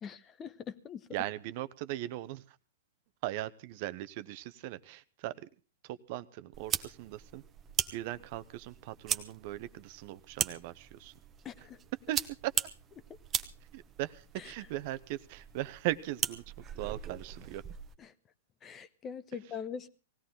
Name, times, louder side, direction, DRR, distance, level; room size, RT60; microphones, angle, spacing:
voice 1, 0.0-1.1 11.4-11.8 14.4-14.5 18.0-18.1 18.6-19.9, left 7 dB, 25° left, 1.0 m, -42 dB
voice 2, 1.1-2.6 3.2-5.5 5.8-7.4 7.9-11.1 12.1-12.2 12.4-12.5 13.7-17.6, right 15 dB, 50° right, 0.8 m, -39 dB
sound 1, 6.5-17.9, right 9 dB, 25° right, 1.0 m, -39 dB
19.0 x 16.5 x 3.8 m
hypercardioid pair, 115°, 0 cm